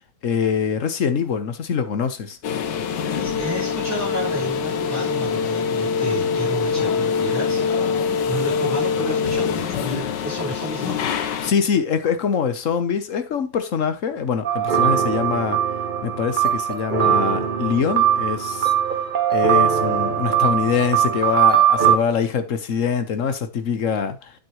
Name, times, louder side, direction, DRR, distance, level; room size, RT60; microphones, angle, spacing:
voice 1, 0.2-2.4 11.4-15.6 16.0-18.7 19.3-24.3, left 6 dB, 45° left, 1.3 m, -24 dB
sound 1, 2.4-11.5, left 6 dB, 70° left, 1.5 m, -24 dB
voice 2, 3.2-7.7 8.3-11.0, right 1 dB, 5° right, 5.4 m, -31 dB
sound 2, 14.4-22.0, right 9 dB, 40° right, 0.7 m, -20 dB
9.5 x 8.1 x 3.1 m
omnidirectional pair, 2.1 m